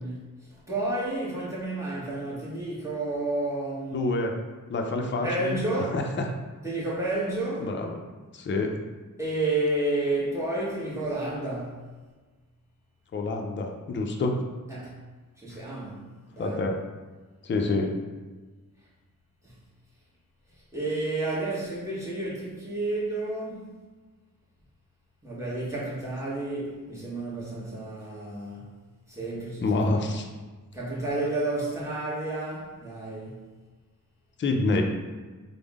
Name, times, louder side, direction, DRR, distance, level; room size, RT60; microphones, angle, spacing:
voice 1, 0.0-4.1 5.2-6.0 6.6-7.7 9.2-11.9 14.7-15.0 15.4-16.0 16.3-16.6 19.4-19.5 20.7-23.7 25.2-28.8 29.1-29.9 30.7-33.5, right 2 dB, 10° right, -7 dB, 1.1 m, -31 dB
voice 2, 3.9-4.4 4.7-5.5 5.8-6.0 7.6-7.9 8.3-8.7 13.1-14.3 16.4-16.8 17.4-18.0 29.6-30.3 34.4-34.8, left 3 dB, 35° left, 2 dB, 0.4 m, -27 dB
3.5 x 2.0 x 3.5 m, 1.3 s
wide cardioid pair, 80°, 35 cm